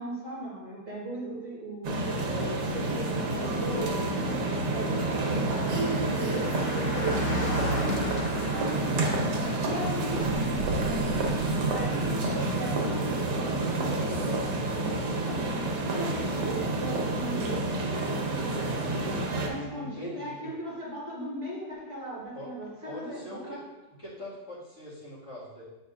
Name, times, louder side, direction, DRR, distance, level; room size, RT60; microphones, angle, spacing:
voice 1, 0.0-5.5 5.8-8.0 9.6-10.2 11.7-15.5 15.9-17.7 19.5-23.6, right 1 dB, 45° right, -6 dB, 1.9 m, -38 dB
sound 1, 1.8-19.5, right 2 dB, 85° right, 1.6 m, -29 dB
Car passing by, 3.8-15.6 15.9-16.0, left 1 dB, 65° left, 3.2 m, -39 dB
voice 2, 9.8-10.6 19.3-20.5 22.3-22.5 22.8-23.6 24.0-25.6, equal, 45° left, -8 dB, 2.3 m, -42 dB
9.4 x 5.2 x 2.5 m, 1.1 s
omnidirectional pair, 1.8 m